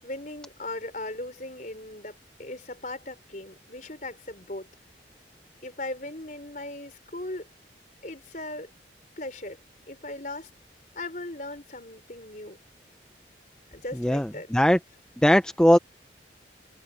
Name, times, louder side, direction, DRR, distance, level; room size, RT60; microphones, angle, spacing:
voice 1, 0.0-4.7 5.6-7.5 8.0-8.7 9.2-9.6 9.9-10.5 10.9-12.6 13.7-14.5, left 2 dB, 45° left, 4.7 m, -38 dB
voice 2, 14.0-14.8 15.2-15.8, equal, 5° left, 0.4 m, -19 dB
head